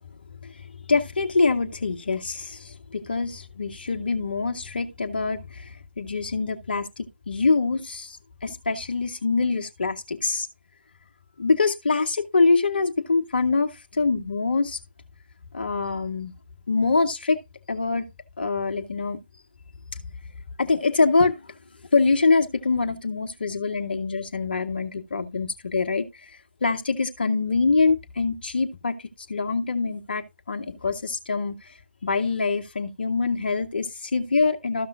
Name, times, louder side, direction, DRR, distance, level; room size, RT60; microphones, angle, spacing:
voice 1, 0.9-8.2 8.4-10.5 11.4-14.8 15.5-16.3 16.7-17.4 17.7-18.1 18.4-19.2 20.6-21.4 21.9-26.1 26.6-29.0 29.3-31.6 32.0-34.9, left 4 dB, 50° left, 1.2 m, -24 dB
13.5 x 5.4 x 2.6 m
figure-of-eight pair, 145°, 6 cm